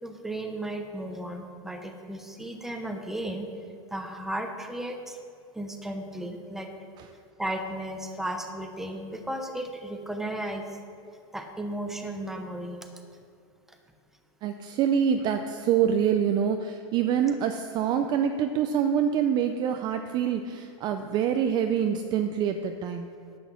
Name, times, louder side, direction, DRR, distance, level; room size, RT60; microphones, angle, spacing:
voice 1, 0.0-3.5 3.9-5.2 5.5-6.7 7.4-10.6 11.3-12.8, right 1 dB, ahead, 4 dB, 0.8 m, -34 dB
voice 2, 14.4-23.1, right 8 dB, 25° right, 7 dB, 0.4 m, -26 dB
11.0 x 8.2 x 5.8 m, 2.5 s
supercardioid pair, 150°, 16 cm